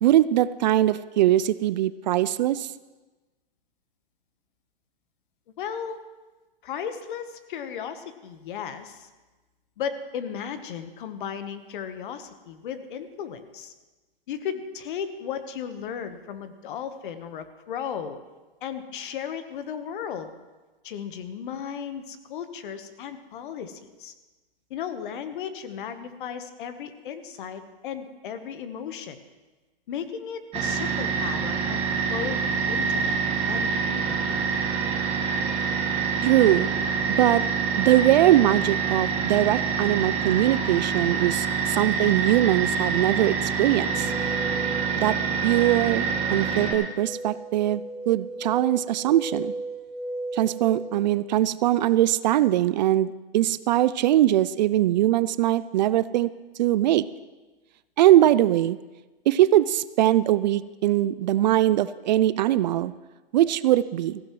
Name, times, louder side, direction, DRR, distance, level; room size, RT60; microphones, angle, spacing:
voice 1, 0.0-2.7 36.2-36.7 37.2-37.4 37.8-44.1 45.0-45.2 45.4-49.5 50.3-53.1 53.3-56.3 56.6-57.1 58.0-58.8 59.3-62.9 63.3-64.2, right 13 dB, 50° right, 16 dB, 0.4 m, -21 dB
voice 2, 5.6-6.0 6.6-9.1 9.8-13.7 14.3-18.2 18.6-20.3 20.8-24.1 24.7-29.2 29.9-31.8 32.1-32.4 32.7-33.2 33.5-34.4, left 8 dB, 60° left, 9 dB, 1.3 m, -35 dB
sound 1, 30.5-46.7, right 5 dB, 20° right, 1.9 m, -26 dB
sound 2, 43.9-51.1, right 2 dB, ahead, 0.8 m, -37 dB
17.0 x 15.5 x 3.1 m, 1.2 s
hypercardioid pair, 150°, 30 cm